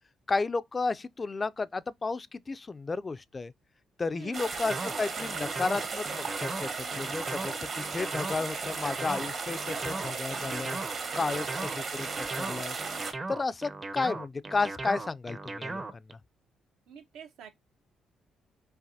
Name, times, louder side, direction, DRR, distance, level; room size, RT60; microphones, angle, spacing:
voice 1, 0.3-3.5 4.0-10.8 11.1-11.4 11.7-12.1 12.4-12.8 13.3-16.0, left 3 dB, 30° left, 0.3 m, -32 dB
voice 2, 4.1-4.5 11.2-11.7 16.9-17.5, right 7 dB, 85° right, 0.8 m, -47 dB
sound 1, 4.3-13.1, right 4 dB, 55° right, 1.1 m, -36 dB
sound 2, 4.6-16.1, right 3 dB, 30° right, 0.5 m, -38 dB
5.6 x 2.5 x 2.6 m
cardioid pair, 90°, 0 cm